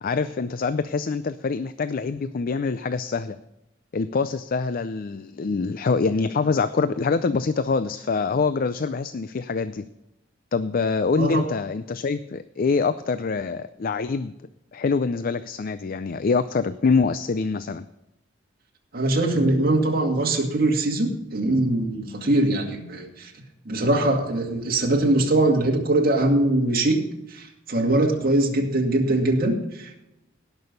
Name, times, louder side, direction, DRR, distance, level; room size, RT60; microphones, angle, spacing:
voice 1, 0.0-3.4 3.9-9.8 10.5-14.3 14.7-17.9, left 4 dB, 50° left, 13 dB, 0.4 m, -25 dB
voice 2, 18.9-23.3 23.6-27.0 27.3-30.0, right 2 dB, 50° right, 1 dB, 2.3 m, -22 dB
17.5 x 6.3 x 5.3 m, 0.90 s
head